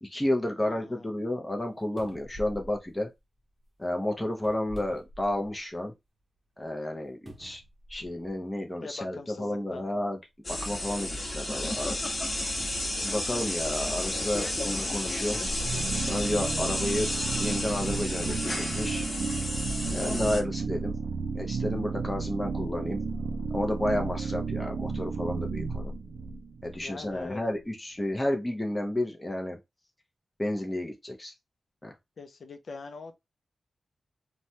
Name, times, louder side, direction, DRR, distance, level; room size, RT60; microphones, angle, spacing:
voice 1, 0.0-3.1 3.8-5.9 6.6-7.6 7.9-10.2 10.5-12.1 13.0-15.4 16.1-17.1 17.4-19.1 19.9-20.9 21.3-23.0 23.5-25.9 26.6-29.6 30.4-31.3 31.8-31.9, left 1 dB, 15° left, 0.6 m, -31 dB
voice 2, 0.6-1.0 8.8-9.9 26.8-27.4 32.2-33.2, left 4 dB, 65° left, 0.5 m, -43 dB
sound 1, 1.6-1.7 2.0-3.7 4.3-5.8 6.2-6.3 7.3-8.4 9.3-9.4 12.6-14.2 14.9-15.1, equal, 35° right, 0.7 m, -48 dB
sound 2, 10.4-20.4, left 1 dB, 35° left, 1.0 m, -32 dB
sound 3, 15.4-27.2, right 4 dB, 80° right, 0.3 m, -33 dB
3.0 x 2.2 x 2.7 m
wide cardioid pair, 100°, 0 cm